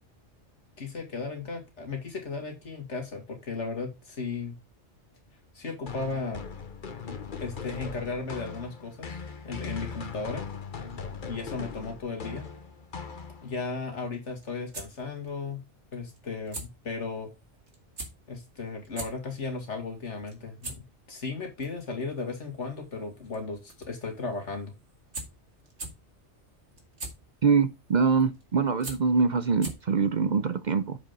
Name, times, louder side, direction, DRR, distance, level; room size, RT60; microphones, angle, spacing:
voice 1, 0.8-4.6 5.5-6.4 7.4-9.2 9.4-10.5 11.3-12.5 13.4-15.6 15.9-17.3 18.3-24.7, left 4 dB, 85° left, 2.6 m, -35 dB
sound 1, 5.9-13.7, left 5 dB, 45° left, 1.1 m, -39 dB
sound 2, 14.4-30.1, right 2 dB, 75° right, 2.5 m, -45 dB
voice 2, 27.4-31.0, right 5 dB, 50° right, 0.6 m, -24 dB
7.4 x 5.1 x 5.3 m
omnidirectional pair, 1.2 m